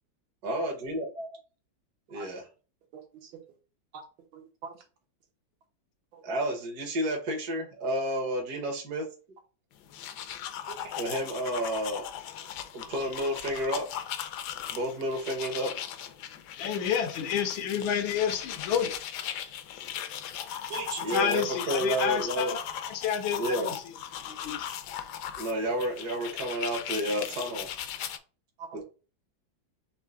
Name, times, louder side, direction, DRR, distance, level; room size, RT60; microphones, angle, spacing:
voice 1, 0.4-1.4 2.1-2.5 6.2-9.1 11.0-12.1 12.4-13.9 14.7-15.7 21.0-22.5 23.3-23.7 25.4-27.7, right 1 dB, 55° right, 1.4 m, -31 dB
voice 2, 2.9-3.3 3.9-4.0 4.3-4.7 6.1-6.2 10.7-10.9 20.7-21.2 28.6-28.8, right 5 dB, 90° right, 1.9 m, -41 dB
sound 1, 9.8-28.2, left 10 dB, 70° left, 1.0 m, -38 dB
voice 3, 16.6-18.9 21.1-22.6 22.9-23.8 24.3-24.7, left 8 dB, 90° left, 1.5 m, -29 dB
4.4 x 3.2 x 3.7 m
omnidirectional pair, 2.1 m